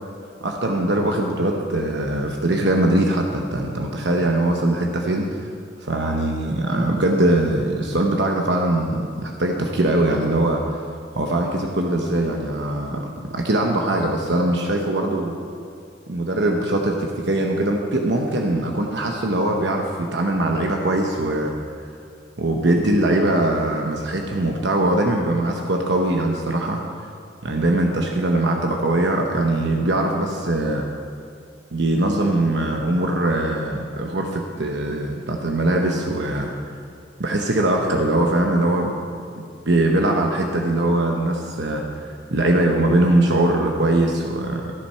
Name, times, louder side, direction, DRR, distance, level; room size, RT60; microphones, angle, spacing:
voice 1, 0.4-5.5 5.8-10.8 11.1-15.4 16.1-21.5 22.4-26.8 27.4-30.9 31.7-36.5 37.2-39.0 39.4-41.8 42.3-44.7, right 1 dB, 70° right, 1 dB, 1.0 m, -21 dB
14.0 x 8.7 x 5.7 m, 2.4 s
head